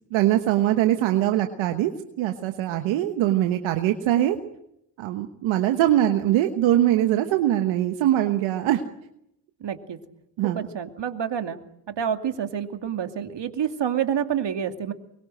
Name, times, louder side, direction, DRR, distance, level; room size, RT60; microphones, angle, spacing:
voice 1, 0.1-1.9 2.2-4.4 5.0-8.8 10.4-10.6, right 13 dB, 90° right, 6 dB, 1.3 m, -22 dB
voice 2, 9.6-10.0 10.4-11.6 11.9-14.9, right 8 dB, 65° right, 7 dB, 2.6 m, -28 dB
24.5 x 23.0 x 7.8 m, 0.79 s
supercardioid pair, 45°, 46 cm